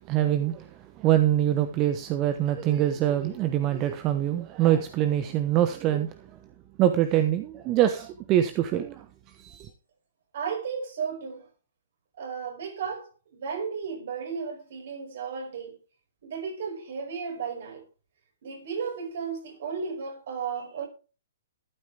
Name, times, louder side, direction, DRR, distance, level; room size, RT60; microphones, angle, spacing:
voice 1, 0.1-0.7 1.0-6.3 6.8-9.7, right 12 dB, 30° right, 1.1 m, -24 dB
voice 2, 10.3-11.5 12.2-15.8 16.2-17.8 18.4-20.9, right 6 dB, 55° right, 5.2 m, -34 dB
13.5 x 12.0 x 3.4 m
figure-of-eight pair, 120°, 0 cm